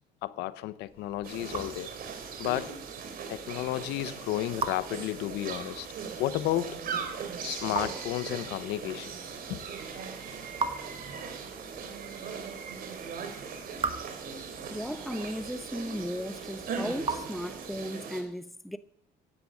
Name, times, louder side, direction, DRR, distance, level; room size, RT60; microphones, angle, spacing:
voice 1, 0.2-1.9 2.4-2.8 3.3-5.9 6.2-6.8 7.4-9.1 9.5-9.6, left 15 dB, 90° left, 0.9 m, -32 dB
Raindrop / Drip, 0.8-18.0, right 4 dB, 35° right, 1.8 m, -42 dB
sound 1, 1.2-18.2, right 6 dB, 60° right, 3.3 m, -39 dB
voice 2, 14.7-18.8, equal, ahead, 0.8 m, -36 dB
16.0 x 10.0 x 6.3 m
cardioid pair, 110°, 17 cm